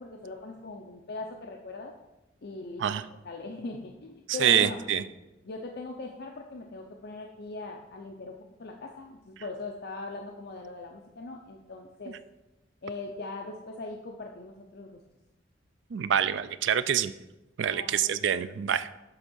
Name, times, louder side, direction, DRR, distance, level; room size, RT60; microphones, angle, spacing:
voice 1, 0.0-1.9 2.4-2.8 3.2-4.8 5.4-12.1 12.8-15.0 17.6-18.2, left 3 dB, 60° left, 2 dB, 0.6 m, -40 dB
voice 2, 4.3-5.0 15.9-17.1 17.6-18.9, right 9 dB, 70° right, 14 dB, 0.4 m, -26 dB
7.8 x 3.6 x 6.2 m, 1.0 s
head